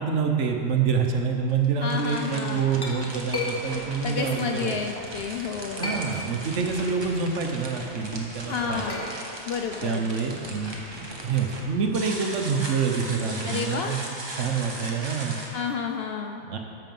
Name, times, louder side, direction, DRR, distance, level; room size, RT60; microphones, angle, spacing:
voice 1, 0.0-4.8 5.8-8.8 9.8-10.8 11.2-15.4 16.4-16.6, right 5 dB, 65° right, 3 dB, 1.2 m, -27 dB
sound 1, 0.6-0.7 1.5-15.5, right 1 dB, 20° right, 1.1 m, -38 dB
voice 2, 1.8-2.7 4.0-5.9 8.5-9.0 9.5-10.0 13.5-14.0 15.5-16.4, left 6 dB, 60° left, 4 dB, 0.7 m, -30 dB
Chink clink, 2.3-5.1 5.6-6.6 7.0-11.1, left 2 dB, 20° left, 1.3 m, -36 dB
13.5 x 5.8 x 5.4 m, 2.8 s
omnidirectional pair, 1.4 m